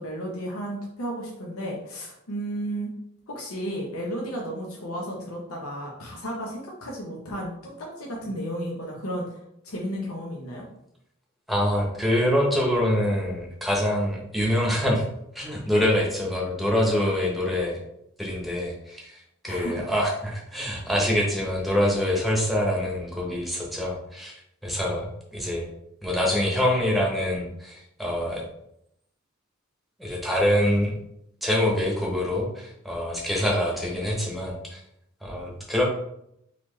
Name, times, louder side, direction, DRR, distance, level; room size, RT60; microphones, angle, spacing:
voice 1, 0.0-2.9 3.3-9.2 9.6-10.7 19.5-19.8, equal, 85° left, -3 dB, 0.8 m, -33 dB
voice 2, 11.5-15.0 15.3-17.8 18.2-24.3 24.6-25.7 26.0-28.5 30.0-30.9 31.4-34.8 35.2-35.8, left 1 dB, ahead, -2 dB, 0.9 m, -25 dB
4.1 x 2.9 x 3.0 m, 0.77 s
head